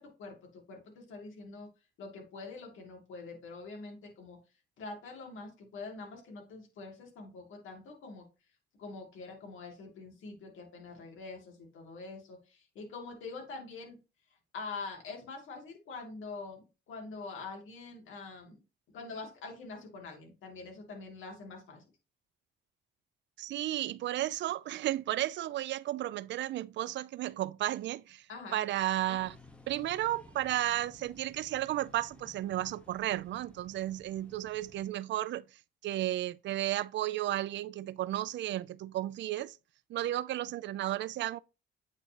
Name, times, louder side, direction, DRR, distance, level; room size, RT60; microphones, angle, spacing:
voice 1, 0.0-1.7 2.0-4.4 4.8-8.2 8.8-14.0 14.5-18.6 18.9-21.9 28.3-28.6, left 3 dB, 80° left, 2.6 m, -45 dB
voice 2, 23.4-28.2 28.5-29.4 29.7-35.4 35.8-39.6 39.9-41.4, right 14 dB, 65° right, 0.4 m, -33 dB
sound 1, 29.2-34.9, left 2 dB, 5° left, 1.2 m, -56 dB
8.9 x 4.1 x 2.9 m
cardioid pair, 90°, 20 cm